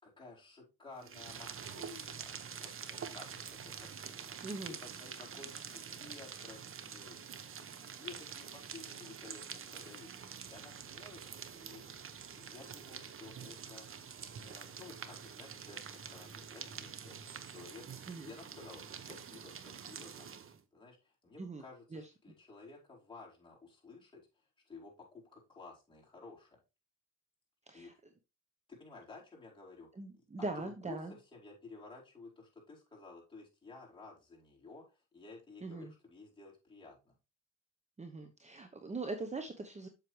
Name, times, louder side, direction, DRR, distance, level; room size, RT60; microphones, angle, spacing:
voice 1, 0.0-7.3 7.6-11.8 12.3-17.9 18.2-20.4 20.7-26.6 27.7-27.9 28.7-29.9 30.4-37.1, left 3 dB, 15° left, -4 dB, 4.6 m, -54 dB
sound 1, 1.0-20.6, right 7 dB, 45° right, 1.0 m, -47 dB
voice 2, 4.4-4.8 18.1-18.3 21.4-21.6 21.9-22.0 27.7-27.9 30.0-31.1 35.6-35.9 38.0-39.9, right 3 dB, 25° right, 6 dB, 0.9 m, -41 dB
7.9 x 6.7 x 3.2 m, 0.28 s
cardioid pair, 90°, 30 cm